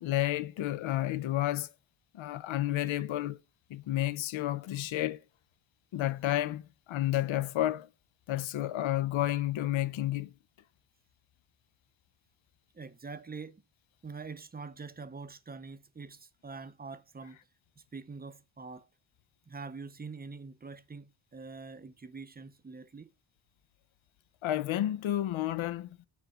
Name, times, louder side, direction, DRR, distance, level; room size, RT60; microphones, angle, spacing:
voice 1, 0.0-1.7 2.1-3.4 3.7-5.2 5.9-7.9 8.3-10.3 24.4-26.0, left 14 dB, 70° left, 0.7 m, -31 dB
voice 2, 12.7-13.6 14.0-17.4 17.8-18.9 19.5-23.1, right 4 dB, 20° right, 0.6 m, -45 dB
7.6 x 4.7 x 6.2 m
cardioid pair, 115°, 48 cm